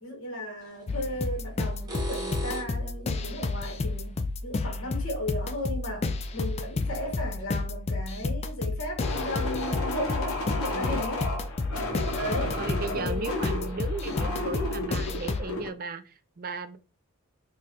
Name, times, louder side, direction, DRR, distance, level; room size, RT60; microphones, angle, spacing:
voice 1, 0.0-11.2 12.1-12.6 12.9-13.4, left 1 dB, 60° left, 1.4 m, -35 dB
sound 1, 0.6-0.8 1.7-2.9 5.6-5.7 6.5-6.6 6.9-7.0 7.4-7.5, right 2 dB, 20° right, 1.1 m, -37 dB
sound 2, 0.9-15.4, left 3 dB, 30° left, 0.3 m, -31 dB
sound 3, 9.0-15.7, left 2 dB, 75° left, 0.8 m, -33 dB
voice 2, 10.7-11.1 12.4-16.8, right 4 dB, 40° right, 0.4 m, -36 dB
4.8 x 2.3 x 2.9 m
head